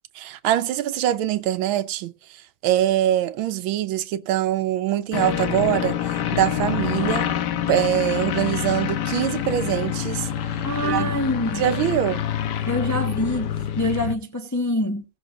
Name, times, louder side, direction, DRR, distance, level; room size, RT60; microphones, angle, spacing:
voice 1, 0.2-2.1 2.6-7.3 7.7-10.3 10.8-11.1 11.6-12.2, right 12 dB, 90° right, 1.6 m, -23 dB
airplane sound, 5.1-14.1, left 10 dB, 65° left, 1.4 m, -26 dB
voice 2, 10.6-11.8 12.6-15.0, left 1 dB, 15° left, 0.7 m, -25 dB
17.5 x 6.4 x 3.9 m
omnidirectional pair, 2.1 m